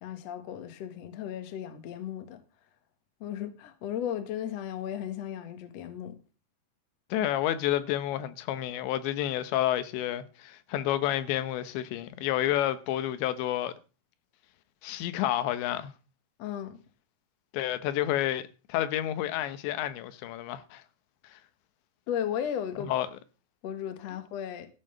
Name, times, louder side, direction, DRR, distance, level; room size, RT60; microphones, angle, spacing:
voice 1, 0.0-2.4 3.2-6.1 16.4-16.8 22.1-22.9 23.6-24.7, left 9 dB, 60° left, 1.7 m, -35 dB
voice 2, 7.1-13.7 14.8-15.9 17.5-18.4 18.7-20.8 21.3-21.4 22.8-23.1, left 12 dB, 90° left, 3.3 m, -30 dB
14.5 x 5.8 x 6.7 m
omnidirectional pair, 5.0 m